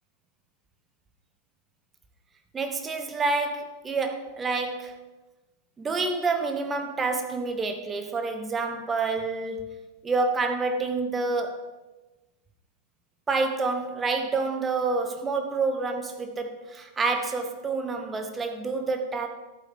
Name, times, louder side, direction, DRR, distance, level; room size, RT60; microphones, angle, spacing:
voice 1, 2.5-5.0 5.8-9.8 10.0-11.7 13.3-19.3, right 3 dB, 20° right, 6 dB, 1.1 m, -28 dB
11.5 x 8.4 x 3.7 m, 1.1 s
figure-of-eight pair, 90°, 0 cm